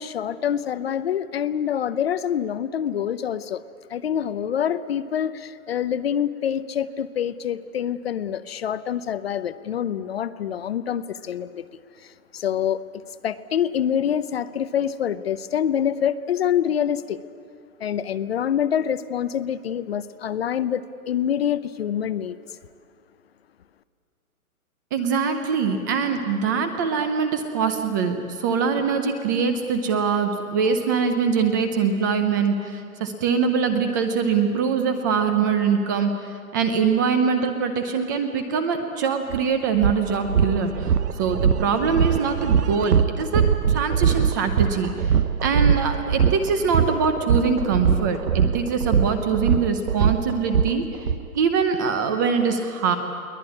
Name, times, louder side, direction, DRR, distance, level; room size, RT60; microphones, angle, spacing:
voice 1, 0.0-3.6 3.9-11.6 12.0-12.8 13.2-17.2 17.8-22.4, left 9 dB, 45° left, 14 dB, 0.7 m, -26 dB
voice 2, 24.9-36.1 36.5-40.9 41.2-43.4 43.7-45.2 45.4-50.8 51.3-53.0, right 5 dB, 15° right, 7 dB, 0.6 m, -23 dB
sound 1, 39.3-39.4 39.8-51.2, right 7 dB, 85° right, 1.0 m, -22 dB
22.5 x 18.0 x 9.7 m, 2.4 s
hypercardioid pair, 160°, 45 cm